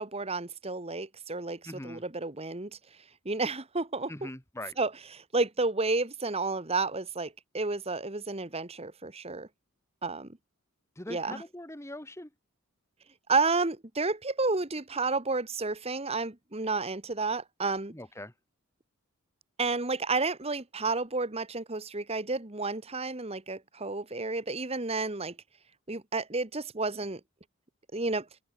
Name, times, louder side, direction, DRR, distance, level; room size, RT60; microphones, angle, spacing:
voice 1, 0.0-2.8 3.2-4.3 4.8-9.5 10.0-10.3 11.1-11.4 13.3-17.9 19.6-25.3 25.9-27.2 27.9-28.3, right 3 dB, 25° right, 1.5 m, -31 dB
voice 2, 1.6-2.0 4.1-4.8 11.0-12.3 17.9-18.3, left 1 dB, 10° left, 2.4 m, -42 dB
open air
head